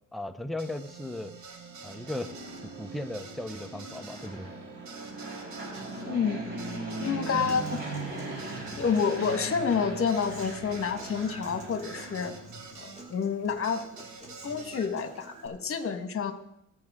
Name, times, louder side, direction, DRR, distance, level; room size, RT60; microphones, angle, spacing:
voice 1, 0.1-1.3 1.8-2.3 2.8-4.5, left 1 dB, ahead, 6 dB, 0.8 m, -36 dB
sound 1, 0.6-13.0 13.6-14.9, right 5 dB, 70° right, 2.0 m, -48 dB
Fixed-wing aircraft airplane, 1.7-12.8, right 2 dB, 40° right, 4.7 m, -40 dB
voice 2, 6.1-6.4 7.0-7.8 8.8-12.3 12.8-13.9 14.4-16.3, left 6 dB, 45° left, 8 dB, 1.6 m, -29 dB
Human voice / Acoustic guitar, 7.5-15.5, right 2 dB, 20° right, 2.7 m, -47 dB
19.0 x 7.9 x 3.7 m, 0.79 s
cardioid pair, 90°, 30 cm